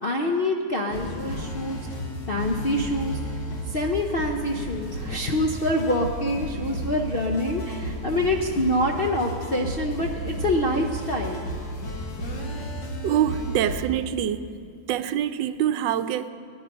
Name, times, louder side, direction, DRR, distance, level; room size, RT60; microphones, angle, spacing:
voice 1, 0.0-3.2 3.7-11.4, left 1 dB, 55° left, 0.6 m, -26 dB
sound 1, 0.9-13.8, equal, 80° left, 2.3 m, -33 dB
voice 2, 13.0-14.5 14.9-16.3, right 10 dB, 80° right, 1.2 m, -25 dB
18.0 x 10.0 x 5.4 m
omnidirectional pair, 2.0 m